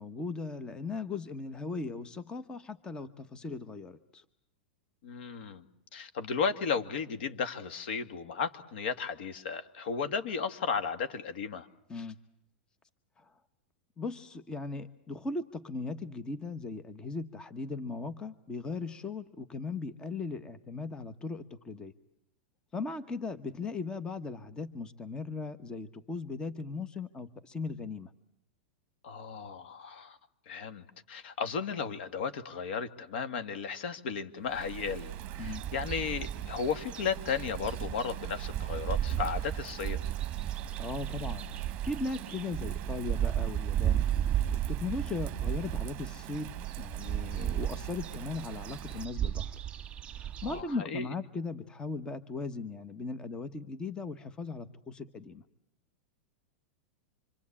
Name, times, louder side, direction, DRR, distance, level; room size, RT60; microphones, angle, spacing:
voice 1, 0.0-4.2 11.9-12.2 13.2-13.3 14.0-21.9 22.7-28.1 35.4-35.6 40.8-44.0 44.5-49.6 50.1-55.4, left 3 dB, 15° left, 12 dB, 1.0 m, -38 dB
voice 2, 5.0-5.7 5.9-11.7 29.0-30.2 30.5-35.1 35.4-40.0 50.4-51.1, left 6 dB, 70° left, 9 dB, 2.1 m, -34 dB
Bird vocalization bird call bird song / Rain, 34.4-49.0, right 13 dB, 40° right, 1.0 m, -43 dB
sound 1, 35.4-50.6, right 10 dB, 20° right, 2.2 m, -34 dB
26.0 x 25.0 x 8.6 m, 0.76 s
supercardioid pair, 145°, 6 cm